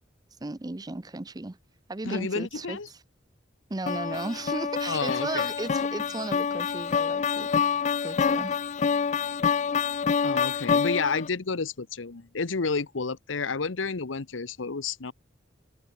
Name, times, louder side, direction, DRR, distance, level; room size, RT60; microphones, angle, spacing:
voice 1, 0.4-1.6 1.9-3.0 3.7-8.6, right 2 dB, 20° right, 0.6 m, -35 dB
voice 2, 2.0-2.9 4.9-5.5 10.2-15.1, left 4 dB, 85° left, 1.0 m, -30 dB
sound 1, 3.9-11.3, left 6 dB, 40° left, 0.4 m, -27 dB
open air
head